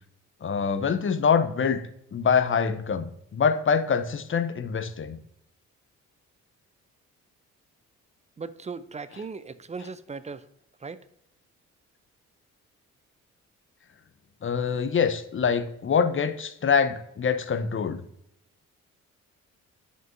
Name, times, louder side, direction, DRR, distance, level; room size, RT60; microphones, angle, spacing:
voice 1, 0.4-1.8 2.1-5.2 14.4-18.0, left 6 dB, 30° left, 11 dB, 0.8 m, -25 dB
voice 2, 8.4-10.4 10.8-11.0, right 4 dB, 15° right, 15 dB, 0.5 m, -37 dB
11.0 x 5.2 x 2.6 m, 0.78 s
hypercardioid pair, 40°, 41 cm